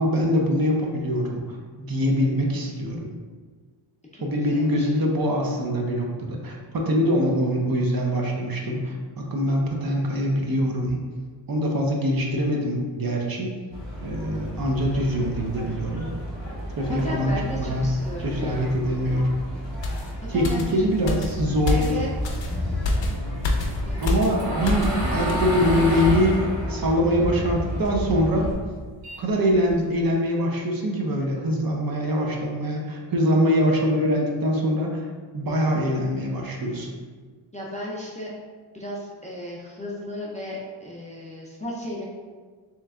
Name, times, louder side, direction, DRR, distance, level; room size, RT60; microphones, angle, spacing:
voice 1, 0.0-1.4 1.8-3.1 4.2-11.0 11.5-13.5 14.0-16.1 16.8-17.9 18.2-19.3 20.3-21.9 24.0-28.5 29.2-35.1 35.3-36.9, equal, 45° right, 0 dB, 0.6 m, -23 dB
voice 2, 4.1-5.1 16.9-18.7 20.2-20.7 21.7-22.4 23.9-24.2 37.5-38.3 38.7-42.1, equal, 15° left, -5 dB, 0.4 m, -35 dB
sound 1, 13.7-28.5, equal, 20° right, 1.2 m, -32 dB
sound 2, 19.8-25.0 25.3-25.5, left 2 dB, 60° left, 0.6 m, -27 dB
sound 3, 23.6-28.1 28.5-30.0, equal, 85° right, 1.5 m, -30 dB
3.3 x 3.1 x 3.5 m, 1.5 s
wide cardioid pair, 170°, 49 cm